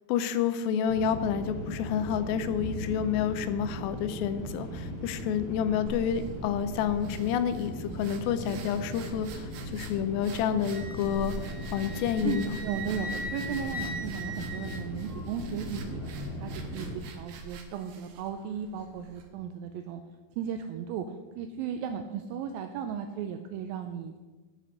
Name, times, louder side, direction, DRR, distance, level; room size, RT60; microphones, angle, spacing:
voice 1, 0.1-11.3 11.7-12.6, left 8 dB, 80° left, 11 dB, 2.3 m, -29 dB
sound 1, 0.9-17.0, equal, 25° left, 3.8 m, -38 dB
sound 2, 5.9-19.3, right 4 dB, 65° right, 2.1 m, -46 dB
Wind instrument woodwind instrument, 10.7-15.3, equal, 45° right, 1.9 m, -40 dB
voice 2, 12.2-16.0 16.4-20.0 20.4-21.1 21.4-24.2, right 7 dB, 80° right, 7 dB, 2.2 m, -36 dB
12.5 x 6.6 x 6.3 m, 1.3 s
omnidirectional pair, 4.4 m